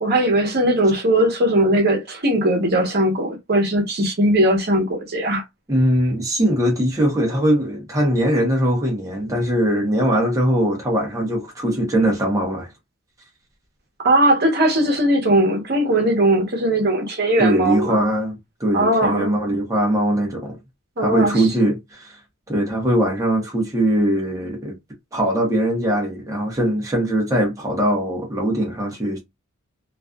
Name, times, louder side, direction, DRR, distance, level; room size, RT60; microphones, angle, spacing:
voice 1, 0.0-5.4 14.0-18.1 18.7-19.3 21.0-21.5, right 1 dB, 50° right, 0.9 m, -19 dB
voice 2, 5.7-12.7 17.4-20.6 21.0-22.2 22.5-24.8 25.1-29.2, right 1 dB, 15° right, 0.7 m, -21 dB
2.4 x 2.3 x 2.2 m
head